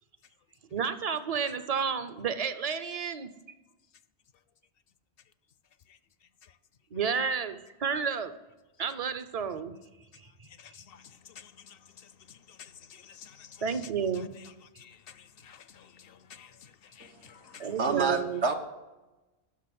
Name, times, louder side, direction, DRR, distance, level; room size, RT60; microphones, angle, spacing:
voice 1, 0.7-3.3 6.9-8.4 8.8-9.8 10.4-10.5 13.6-14.3 17.6-18.4, right 6 dB, 40° right, 0.6 m, -31 dB
voice 2, 10.5-13.6 14.8-17.7, left 8 dB, 65° left, 0.7 m, -52 dB
voice 3, 17.5-18.5, right 4 dB, 80° right, 1.4 m, -29 dB
10.5 x 6.3 x 7.6 m
omnidirectional pair, 1.1 m